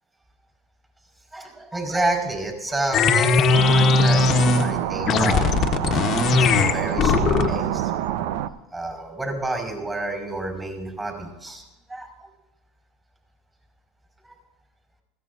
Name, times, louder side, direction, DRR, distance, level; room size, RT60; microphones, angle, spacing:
voice 1, 1.3-5.5 6.2-7.9 8.7-11.6 11.9-12.3 14.2-14.3, right 2 dB, 15° right, 1 dB, 5.4 m, -30 dB
sound 1, 2.9-4.7 5.1-7.6, left 4 dB, 45° left, 1.3 m, -19 dB
sound 2, 3.5-8.5, right 12 dB, 75° right, 0.7 m, -27 dB
20.5 x 16.0 x 2.8 m, 0.99 s
supercardioid pair, 110°, 0 cm